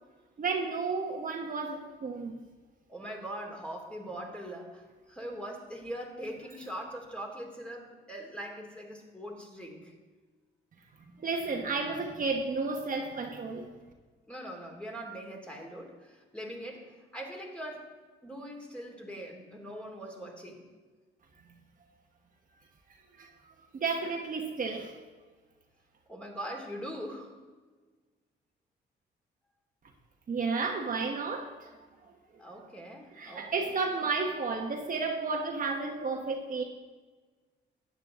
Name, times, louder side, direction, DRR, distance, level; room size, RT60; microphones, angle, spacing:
voice 1, 0.4-2.3 11.2-13.7 23.2-23.3 23.7-24.9 30.3-31.7 33.2-36.6, right 4 dB, 45° right, 1.2 m, -32 dB
voice 2, 2.9-9.9 14.3-17.9 18.2-20.7 26.1-27.4 32.4-33.8, equal, 5° left, 2.6 m, -42 dB
13.0 x 9.3 x 3.7 m
cardioid pair, 90°, 20 cm